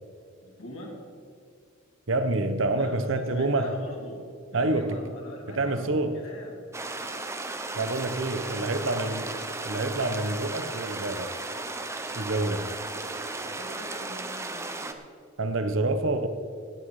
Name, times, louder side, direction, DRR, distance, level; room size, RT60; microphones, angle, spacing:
voice 1, 0.4-1.0 2.7-4.2 4.5-6.5 8.2-9.9 12.9-15.0, equal, 70° left, 3.0 m, -44 dB
voice 2, 2.1-3.8 4.5-5.0 5.5-6.2 7.7-9.2 9.7-11.3 12.1-12.7 15.4-16.3, right 2 dB, 65° right, 0.9 m, -27 dB
sound 1, 6.7-14.9, right 2 dB, 15° right, 0.7 m, -35 dB
17.5 x 9.6 x 4.8 m
head